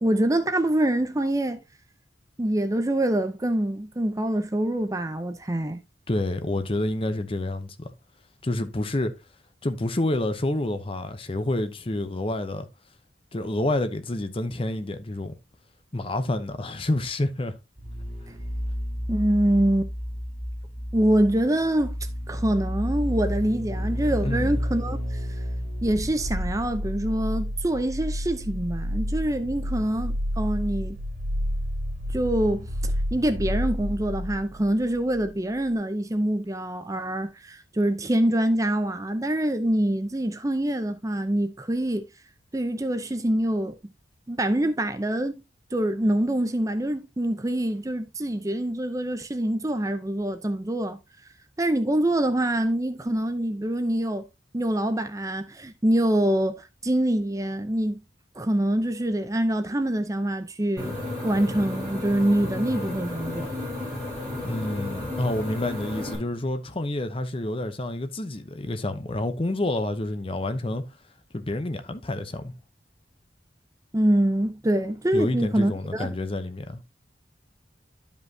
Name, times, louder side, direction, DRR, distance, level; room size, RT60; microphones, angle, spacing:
voice 1, 0.0-1.6 2.4-5.8 19.1-19.9 20.9-21.9 22.3-25.2 25.8-31.0 32.1-42.1 42.5-43.7 44.3-45.4 45.7-51.0 51.6-54.2 54.5-58.0 58.4-60.9 61.2-63.5 73.9-76.1, right 1 dB, 20° right, 0.6 m, -25 dB
voice 2, 6.1-7.9 8.4-9.1 9.6-12.6 13.3-15.4 15.9-17.6 24.2-24.5 64.4-70.8 71.3-72.5 75.1-76.8, left 1 dB, 30° left, 0.7 m, -28 dB
sound 1, 17.8-35.3 35.6-35.7, equal, 40° right, 2.6 m, -30 dB
sound 2, 60.8-66.2, left 1 dB, 5° left, 3.9 m, -33 dB
11.5 x 5.3 x 2.7 m
head